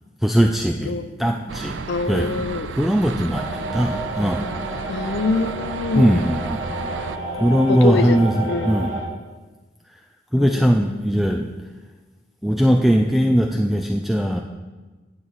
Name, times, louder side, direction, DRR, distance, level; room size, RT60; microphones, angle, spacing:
voice 1, 0.2-4.5 5.9-6.6 7.3-8.9 9.9-10.0 10.3-11.6 12.4-14.4, equal, ahead, 2 dB, 0.3 m, -20 dB
sound 1, 1.5-7.2, right 5 dB, 75° right, 0.5 m, -34 dB
voice 2, 1.9-2.7 4.9-6.2 7.7-8.2 8.5-8.9 10.4-11.0, left 4 dB, 65° left, 10 dB, 0.6 m, -25 dB
sound 2, 3.3-9.0, right 2 dB, 45° right, 2.7 m, -30 dB
9.5 x 7.5 x 4.1 m, 1.2 s
head